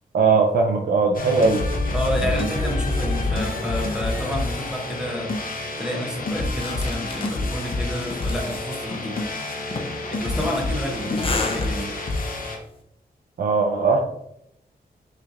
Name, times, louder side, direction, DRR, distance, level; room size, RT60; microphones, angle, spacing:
voice 1, 0.1-1.6 2.2-2.3 13.4-14.0, right 4 dB, 75° right, 0 dB, 0.6 m, -19 dB
sound 1, 1.1-12.6, left 2 dB, 60° left, 0.8 m, -27 dB
voice 2, 1.9-5.3 5.8-9.2 10.1-11.9, equal, 5° right, -2 dB, 0.9 m, -30 dB
sound 2, 6.6-12.2, left 3 dB, 35° left, 0.6 m, -33 dB
6.6 x 3.2 x 2.5 m, 0.78 s
wide cardioid pair, 120°, 16 cm